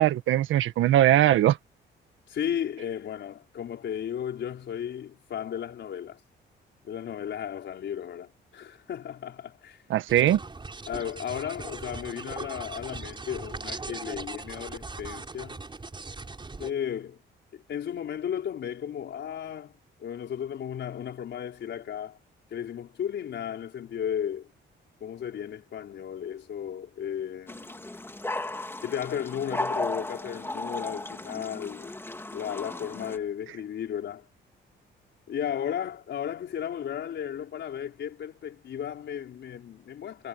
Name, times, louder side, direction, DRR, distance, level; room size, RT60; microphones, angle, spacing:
voice 1, 0.0-1.6 9.9-10.4, right 12 dB, 80° right, 1.6 m, -20 dB
voice 2, 2.3-6.2 6.8-9.8 10.9-15.6 16.6-17.2 17.7-19.7 20.0-22.2 22.5-24.5 25.0-27.8 28.8-31.9 32.3-34.3 35.3-40.3, left 9 dB, 65° left, 4.9 m, -34 dB
sound 1, 10.1-16.7, right 3 dB, 25° right, 5.5 m, -39 dB
sound 2, 27.5-33.2, left 2 dB, 10° left, 2.6 m, -35 dB
cardioid pair, 90°, 20 cm